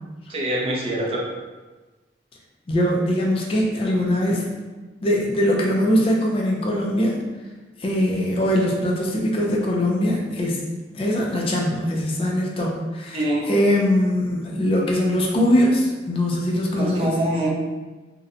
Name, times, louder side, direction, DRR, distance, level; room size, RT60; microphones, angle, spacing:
voice 1, 0.3-1.2 13.1-13.5 16.8-17.5, right 1 dB, 35° right, -3 dB, 0.5 m, -24 dB
voice 2, 2.7-4.4 5.0-7.2 7.8-10.6 10.9-17.2, equal, 30° left, -2 dB, 0.4 m, -21 dB
2.7 x 2.1 x 2.5 m, 1.2 s
head